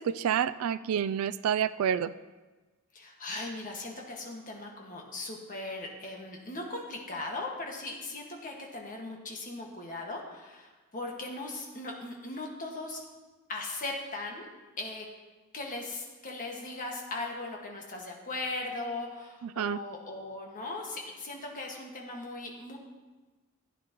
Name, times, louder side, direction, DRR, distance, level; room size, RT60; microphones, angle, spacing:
voice 1, 0.0-2.1 19.4-19.8, right 8 dB, 70° right, 14 dB, 0.3 m, -28 dB
voice 2, 2.9-13.0 13.5-14.5 14.8-15.1 15.5-22.8, left 2 dB, 35° left, 0 dB, 1.7 m, -38 dB
14.5 x 9.2 x 3.0 m, 1.3 s
head